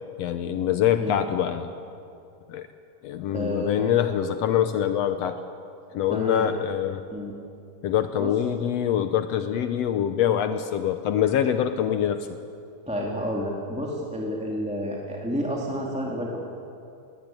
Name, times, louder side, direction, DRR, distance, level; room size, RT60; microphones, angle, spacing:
voice 1, 0.2-1.7 2.5-2.7 3.0-5.4 5.9-7.0 7.8-12.3, left 10 dB, 80° left, 9 dB, 1.5 m, -24 dB
voice 2, 3.3-3.9 6.1-6.5 7.1-7.3 8.2-8.3 12.9-16.4, equal, ahead, -2 dB, 1.8 m, -30 dB
20.0 x 18.0 x 9.0 m, 2.5 s
omnidirectional pair, 3.8 m